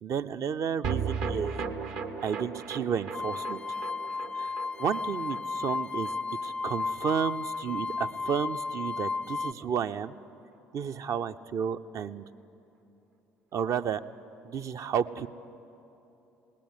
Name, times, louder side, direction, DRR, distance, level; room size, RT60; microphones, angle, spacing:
voice 1, 0.0-1.6 2.2-3.6 4.3-4.5 4.8-6.1 6.4-10.2 10.7-12.2 13.5-14.0 14.4-15.3, right 7 dB, 45° right, 11 dB, 0.6 m, -32 dB
sound 1, 0.8-7.3 7.5-7.6 7.9-8.0, right 5 dB, 65° right, 1.3 m, -37 dB
sound 2, 3.1-9.5, left 4 dB, 15° left, 0.4 m, -33 dB
19.0 x 18.5 x 9.6 m, 3.0 s
figure-of-eight pair, 55°, 7 cm